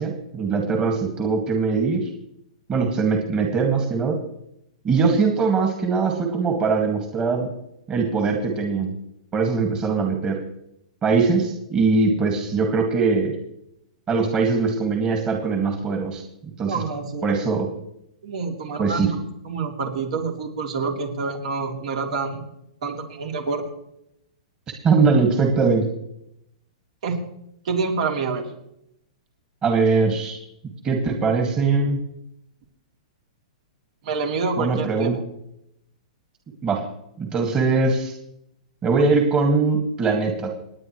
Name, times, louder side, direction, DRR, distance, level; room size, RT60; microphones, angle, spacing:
voice 1, 0.0-2.1 2.7-4.2 4.8-7.5 7.9-8.9 9.3-10.4 11.0-13.3 14.1-16.2 16.6-16.8 17.2-17.7 18.8-19.1 24.8-25.9 29.6-30.4 30.8-32.0 34.6-35.2 36.6-36.8 37.2-38.2 38.8-40.5, right 4 dB, 20° right, 2 dB, 2.0 m, -21 dB
voice 2, 16.6-17.3 18.2-22.4 22.8-23.6 27.0-27.2 27.6-28.5 34.0-35.2, right 4 dB, 60° right, 1 dB, 3.1 m, -27 dB
29.0 x 9.6 x 3.2 m, 0.80 s
hypercardioid pair, 150°, 4 cm